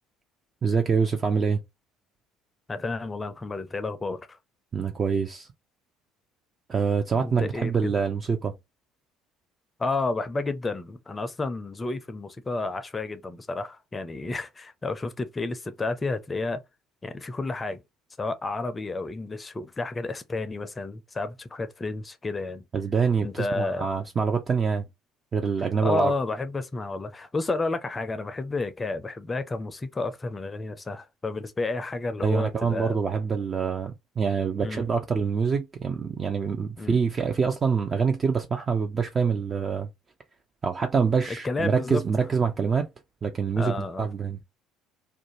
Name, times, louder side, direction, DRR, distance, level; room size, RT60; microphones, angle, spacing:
voice 1, 0.6-1.6 4.7-5.5 6.7-8.5 22.7-24.9 25.3-26.1 32.2-39.9 40.6-42.9 43.2-44.4, right 5 dB, 35° right, 0.5 m, -25 dB
voice 2, 2.7-4.4 7.2-7.9 9.8-16.6 17.0-17.8 18.2-22.6 23.2-23.9 25.8-33.0 34.6-34.9 36.8-37.0 41.3-42.0 43.6-44.1, left 3 dB, 25° left, 0.5 m, -31 dB
2.5 x 2.2 x 2.9 m
hypercardioid pair, 60°, 0 cm